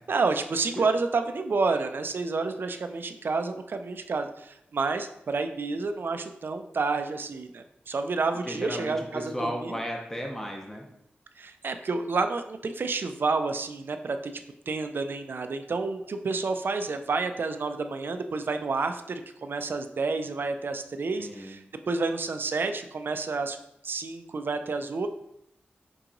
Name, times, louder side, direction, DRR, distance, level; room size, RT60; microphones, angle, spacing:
voice 1, 0.1-9.8 11.4-14.3 14.7-23.6 23.8-25.1, right 4 dB, 60° right, 7 dB, 0.4 m, -29 dB
voice 2, 8.4-10.9 21.2-21.6, equal, 10° left, 0 dB, 0.8 m, -34 dB
4.5 x 2.9 x 3.8 m, 0.80 s
wide cardioid pair, 75°, 4 cm